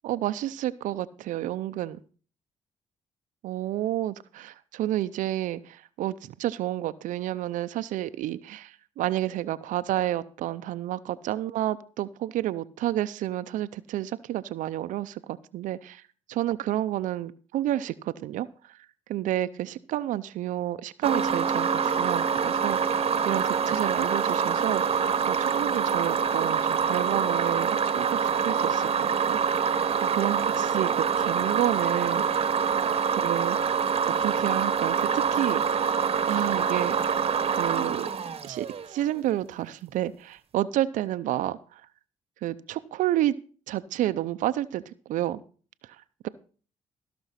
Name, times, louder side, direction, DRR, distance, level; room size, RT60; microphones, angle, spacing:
voice 1, 0.0-2.0 3.4-16.0 16.3-18.8 19.1-29.7 30.1-32.7 33.2-33.6 34.2-35.6 36.3-37.0 37.5-38.1 38.4-41.8 42.4-43.3 43.7-45.4 46.2-46.3, right 13 dB, 85° right, 12 dB, 0.6 m, -30 dB
sound 1, 21.0-39.0, right 6 dB, 50° right, 1.0 m, -25 dB
15.5 x 6.1 x 5.7 m, 0.40 s
cardioid pair, 75°, 13 cm